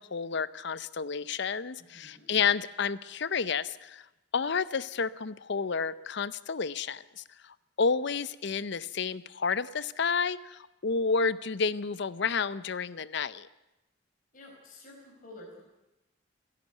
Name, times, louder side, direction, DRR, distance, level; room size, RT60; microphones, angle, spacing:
voice 1, 0.0-4.0 4.3-13.5, left 5 dB, 60° left, 17 dB, 0.6 m, -30 dB
voice 2, 1.8-2.3 14.3-15.6, left 2 dB, 45° left, -1 dB, 4.7 m, -50 dB
28.0 x 11.0 x 9.1 m, 0.99 s
head